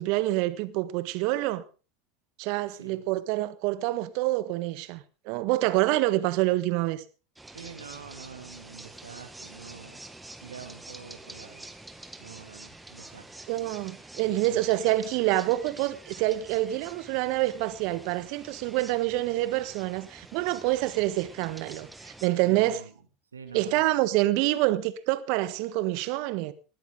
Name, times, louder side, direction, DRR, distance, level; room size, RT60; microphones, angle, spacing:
voice 1, 0.0-1.6 2.4-7.0 13.5-22.8 23.5-26.5, right 16 dB, 60° right, 1.5 m, -27 dB
voice 2, 2.7-3.1 7.5-10.0 10.4-11.7 12.2-13.3 14.2-14.6 22.4-22.9 23.3-23.8 24.1-24.2, right 6 dB, 90° right, 2.6 m, -46 dB
sound 1, 7.3-22.3, right 2 dB, 10° right, 2.0 m, -47 dB
19.5 x 13.5 x 3.8 m
hypercardioid pair, 85°, 0 cm